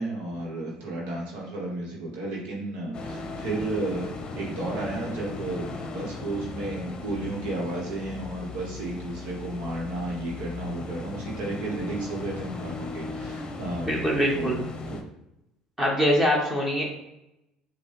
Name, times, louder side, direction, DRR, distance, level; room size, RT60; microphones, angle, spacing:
voice 1, 0.0-13.9 14.3-14.6 14.9-15.1, right 2 dB, 75° right, -2 dB, 1.0 m, -33 dB
sound 1, 2.9-15.0, left 3 dB, 35° left, 0.7 m, -37 dB
voice 2, 13.9-14.6 15.8-16.9, equal, 15° right, -3 dB, 1.3 m, -23 dB
5.3 x 2.2 x 3.2 m, 0.88 s
supercardioid pair, 80°, 2 cm